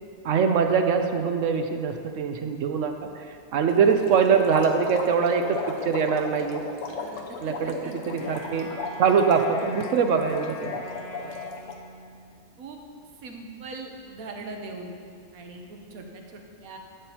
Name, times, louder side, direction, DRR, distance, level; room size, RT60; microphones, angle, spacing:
voice 1, 0.2-3.2 3.5-5.6 5.8-6.6 7.4-8.7 9.0-10.8, right 6 dB, 65° right, 6 dB, 0.9 m, -23 dB
sound 1, 3.7-11.7, left 3 dB, 65° left, 1.1 m, -36 dB
voice 2, 7.0-8.2 11.1-11.3 12.6-12.8 13.2-14.9 15.3-16.8, right 3 dB, 85° right, 3 dB, 1.4 m, -41 dB
Wind instrument woodwind instrument, 8.0-12.4, left 1 dB, 50° left, 0.7 m, -42 dB
12.0 x 8.7 x 2.9 m, 2.4 s
omnidirectional pair, 1.5 m